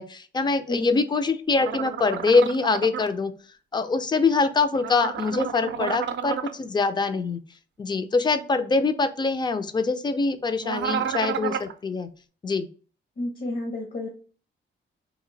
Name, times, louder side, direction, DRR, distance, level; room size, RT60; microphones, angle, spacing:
voice 1, 0.0-3.3 3.7-7.4 7.8-12.1 12.4-12.7, left 4 dB, 20° left, 10 dB, 0.3 m, -24 dB
voice 2, 0.7-1.0 13.2-14.1, left 2 dB, 50° left, 1 dB, 0.7 m, -31 dB
sound 1, 1.6-3.1 4.7-6.5 10.6-11.7, right 8 dB, 70° right, 0.4 m, -31 dB
2.9 x 2.4 x 3.9 m, 0.39 s
wide cardioid pair, 140°, 20 cm